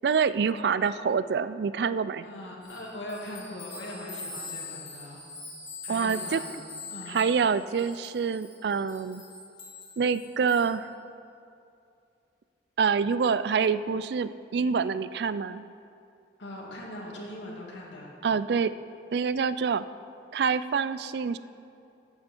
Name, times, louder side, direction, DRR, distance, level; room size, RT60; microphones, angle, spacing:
voice 1, 0.0-2.2 5.9-6.4 7.1-9.2 10.0-10.9 12.8-15.6 18.2-18.7 19.1-19.8 20.3-21.4, right 6 dB, 60° right, 15 dB, 0.3 m, -26 dB
voice 2, 2.2-5.2 5.8-6.5 6.9-7.1 16.4-18.1, left 1 dB, 80° left, -3 dB, 2.3 m, -40 dB
sound 1, 2.6-10.7, left 3 dB, 25° left, 3.1 m, -43 dB
13.5 x 8.6 x 4.5 m, 2.5 s
head